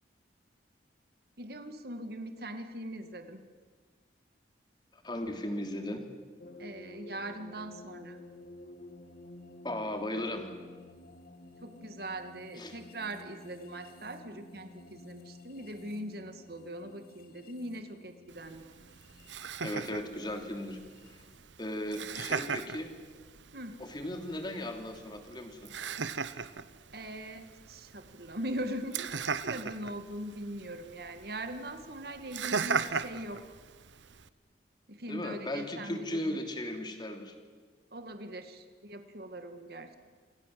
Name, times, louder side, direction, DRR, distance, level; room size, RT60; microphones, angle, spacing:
voice 1, 1.4-3.4 6.6-8.2 11.6-18.7 23.5-23.8 26.9-33.4 34.9-36.4 37.9-39.9, right 1 dB, 55° right, 7 dB, 2.2 m, -41 dB
voice 2, 4.9-6.0 9.6-10.5 12.6-12.8 19.6-20.8 21.1-21.2 21.6-22.9 23.8-25.7 35.1-37.3, left 1 dB, 25° left, 5 dB, 3.1 m, -36 dB
sound 1, 6.4-21.4, left 2 dB, 55° left, 2.6 m, -52 dB
Laughter, 18.3-34.3, right 5 dB, 90° right, 1.0 m, -39 dB
28.0 x 27.0 x 7.8 m, 1.5 s
head